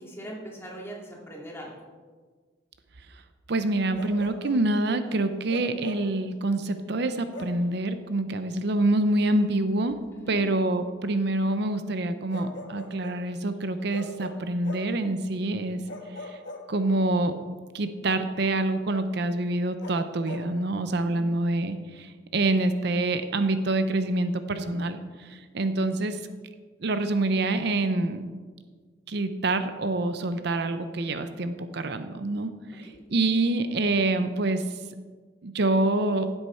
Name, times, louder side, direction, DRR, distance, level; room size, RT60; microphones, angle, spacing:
voice 1, 0.0-1.7 10.1-10.4 21.0-21.3 32.8-33.0, right 1 dB, 15° left, -2 dB, 2.4 m, -41 dB
voice 2, 3.5-10.0 10.3-15.8 16.2-16.4 16.7-17.4 17.7-26.2 26.8-28.2 29.1-34.6 35.4-36.2, right 2 dB, 65° right, 9 dB, 0.7 m, -26 dB
Bark, 3.9-4.7 5.5-6.2 7.3-7.7 9.3-9.5 12.3-13.3 13.9-15.0 15.9-17.1 19.8-20.5, left 2 dB, 70° left, 1.3 m, -41 dB
15.5 x 8.1 x 4.4 m, 1.5 s
head